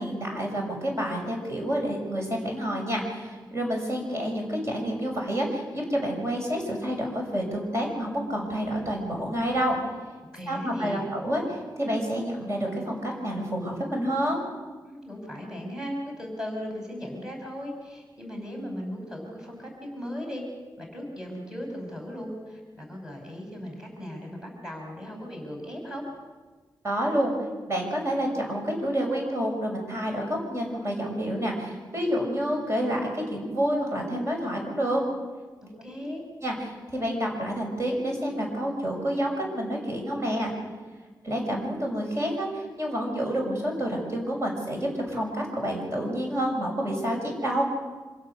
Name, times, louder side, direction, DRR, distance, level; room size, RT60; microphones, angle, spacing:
voice 1, 0.0-9.8 10.5-14.4 26.8-27.3 27.7-35.0 35.7-35.8 36.4-36.5 36.9-40.5 41.2-47.6, equal, 40° right, 0 dB, 6.6 m, -28 dB
voice 2, 10.3-11.1 14.8-20.4 20.8-26.1 35.6-36.2, equal, 10° right, 0 dB, 5.6 m, -37 dB
26.0 x 16.5 x 6.8 m, 1.4 s
wide cardioid pair, 115°, 8 cm